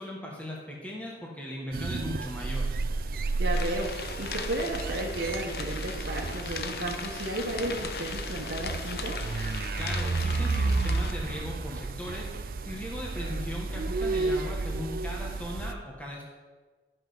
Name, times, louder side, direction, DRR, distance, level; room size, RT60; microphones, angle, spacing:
voice 1, 0.0-2.7 9.8-12.3 12.6-16.3, left 1 dB, 10° left, -2 dB, 1.3 m, -38 dB
sound 1, 1.7-15.7, right 3 dB, 55° right, 0.5 m, -32 dB
voice 2, 3.4-9.2, right 1 dB, 85° right, -2 dB, 1.1 m, -33 dB
sound 2, 3.5-11.1, left 5 dB, 60° left, 0.7 m, -39 dB
sound 3, 3.8-10.3, equal, 25° left, 2.7 m, -48 dB
12.0 x 5.6 x 5.5 m, 1.4 s
head